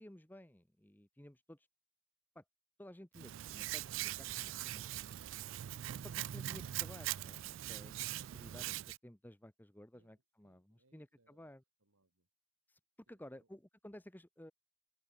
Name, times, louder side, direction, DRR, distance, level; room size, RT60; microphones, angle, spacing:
voice 1, 0.0-1.7 2.3-2.4 2.8-5.0 6.0-11.6 12.7-12.8 13.1-14.5, left 1 dB, 10° left, 0.9 m, -55 dB
Hands, 3.1-9.0, right 13 dB, 65° right, 0.3 m, -42 dB
voice 2, 9.9-12.3 13.1-13.5, right 2 dB, 90° right, 3.1 m, -77 dB
head